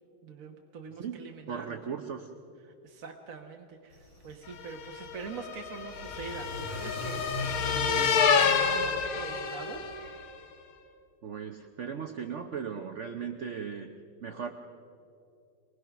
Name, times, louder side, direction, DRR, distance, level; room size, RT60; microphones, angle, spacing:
voice 1, 0.2-1.8 2.7-9.8, right 5 dB, 50° right, 2 dB, 1.2 m, -43 dB
voice 2, 1.0-2.3 11.2-13.9 14.2-14.5, right 7 dB, 85° right, 5 dB, 0.6 m, -37 dB
Car / Accelerating revving vroom, 3.9-10.1, left 2 dB, 35° left, 6.0 m, -41 dB
sound 1, 4.7-10.2, left 6 dB, 75° left, 2.0 m, -28 dB
23.5 x 20.0 x 5.9 m, 2.7 s
omnidirectional pair, 2.4 m